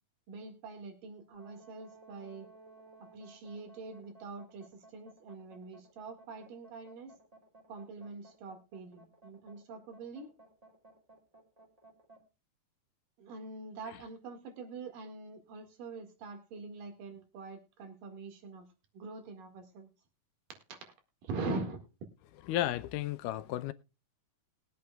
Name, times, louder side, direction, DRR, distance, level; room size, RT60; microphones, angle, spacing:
voice 1, 0.3-2.5 3.0-7.1 7.7-10.3 13.2-18.6 18.9-19.9 20.7-20.9 21.2-21.8, right 3 dB, 90° right, 3.6 m, -44 dB
sound 1, 1.3-12.2, right 2 dB, 15° right, 1.9 m, -57 dB
voice 2, 22.5-23.7, left 13 dB, 90° left, 2.3 m, -33 dB
21.0 x 8.3 x 2.3 m
omnidirectional pair, 3.7 m